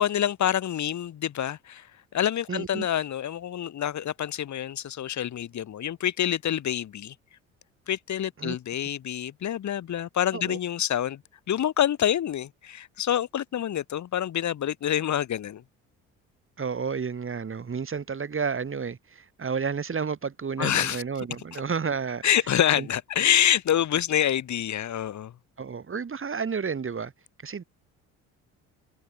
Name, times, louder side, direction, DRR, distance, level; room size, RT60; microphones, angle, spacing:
voice 1, 0.0-7.1 7.9-11.2 11.5-15.6 20.6-21.0 22.2-25.3, left 10 dB, 50° left, 2.2 m, -27 dB
voice 2, 2.5-2.9 8.4-8.6 10.3-10.6 16.6-22.2 22.8-22.9 25.6-27.1 27.4-27.6, right 5 dB, 35° right, 4.9 m, -31 dB
hypercardioid pair, 60°, 37 cm